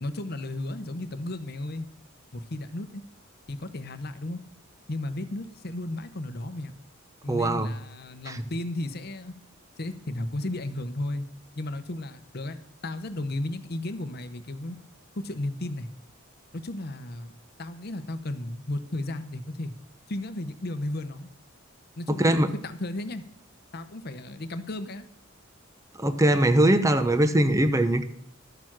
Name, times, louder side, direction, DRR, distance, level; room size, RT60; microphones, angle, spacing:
voice 1, 0.0-1.9 2.3-3.0 3.5-4.4 4.9-6.7 7.2-9.3 9.8-11.3 11.6-12.6 12.8-14.8 15.1-15.9 16.5-17.3 17.6-19.7 20.1-21.3 22.0-23.2 23.7-25.1, left 1 dB, 50° left, 9 dB, 0.8 m, -34 dB
voice 2, 7.3-7.7 8.3-8.4 22.1-22.5 26.0-28.0, right 1 dB, 15° right, 10 dB, 0.7 m, -21 dB
12.0 x 6.9 x 6.1 m, 0.69 s
head